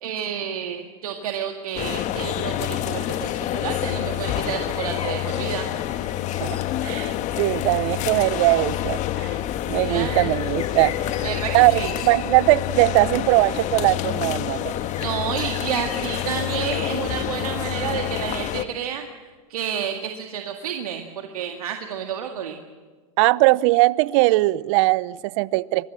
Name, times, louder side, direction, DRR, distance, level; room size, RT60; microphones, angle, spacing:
voice 1, 0.0-5.7 9.8-10.3 11.2-11.9 15.0-19.1 19.5-22.6, right 8 dB, 80° right, 4 dB, 1.9 m, -30 dB
sound 1, 1.8-18.7, left 13 dB, 40° left, 1.4 m, -27 dB
sound 2, 4.4-17.7, left 7 dB, 90° left, 2.7 m, -42 dB
voice 2, 6.4-9.4 9.7-10.9 11.5-14.8 23.2-25.9, right 21 dB, 55° right, 21 dB, 0.7 m, -20 dB
24.5 x 22.0 x 7.5 m, 1.4 s
hypercardioid pair, 105°, 19 cm